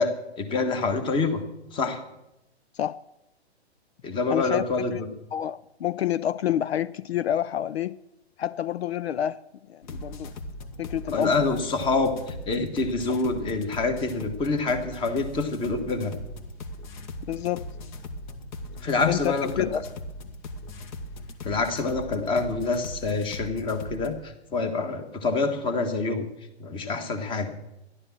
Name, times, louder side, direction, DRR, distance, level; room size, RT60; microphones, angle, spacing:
voice 1, 0.0-1.4 1.7-2.0 4.0-5.1 11.1-16.1 18.8-19.8 21.4-26.2 26.6-27.5, left 3 dB, 15° left, 1.4 m, -26 dB
voice 2, 4.3-4.7 4.9-5.0 5.3-8.0 8.4-9.4 9.7-10.3 10.8-11.6 17.3-17.7 19.1-19.8, left 11 dB, 70° left, 0.6 m, -28 dB
sound 1, 9.8-24.1, left 1 dB, 45° left, 1.7 m, -39 dB
13.5 x 11.5 x 7.3 m
hypercardioid pair, 145°, 33 cm